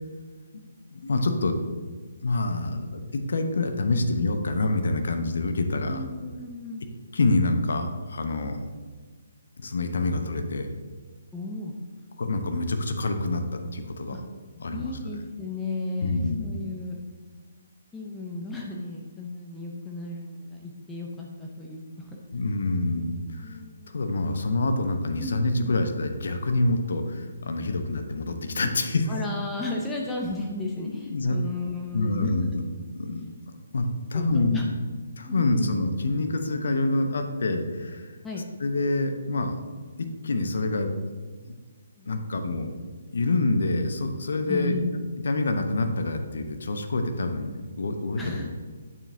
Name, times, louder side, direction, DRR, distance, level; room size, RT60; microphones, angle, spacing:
voice 1, 0.9-1.6 2.2-6.0 7.1-8.6 9.6-10.7 12.2-14.2 14.6-14.9 16.0-16.5 22.3-23.6 23.9-29.2 30.8-31.4 31.9-32.6 32.9-33.3 33.7-34.6 35.2-38.1 38.6-39.6 40.0-40.9 41.4-41.6 42.0-42.7 43.1-44.7 45.2-48.5, left 2 dB, 65° left, 6 dB, 0.9 m, -26 dB
voice 2, 5.9-6.9 11.3-12.0 14.1-14.2 14.7-17.0 17.9-22.2 23.3-24.0 25.2-25.8 29.1-32.4 34.1-34.9 35.2-35.8 38.2-38.5 42.0-42.3 44.5-45.0 48.2-48.5, left 2 dB, 10° left, -2 dB, 0.7 m, -34 dB
8.6 x 7.0 x 2.8 m, 1.5 s
figure-of-eight pair, 140°, 0 cm